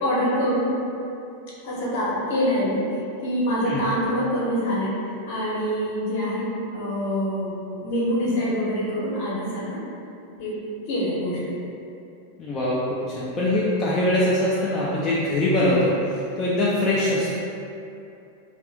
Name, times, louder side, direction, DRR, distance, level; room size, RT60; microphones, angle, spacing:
voice 1, 0.0-0.7 1.6-2.8 3.2-5.0 5.3-9.8 10.4-10.6 10.9-11.5, equal, 50° left, -7 dB, 0.9 m, -25 dB
voice 2, 12.4-12.8 13.1-17.4, left 1 dB, 25° left, -8 dB, 0.4 m, -22 dB
2.5 x 2.5 x 3.4 m, 2.6 s
figure-of-eight pair, 90°, 0 cm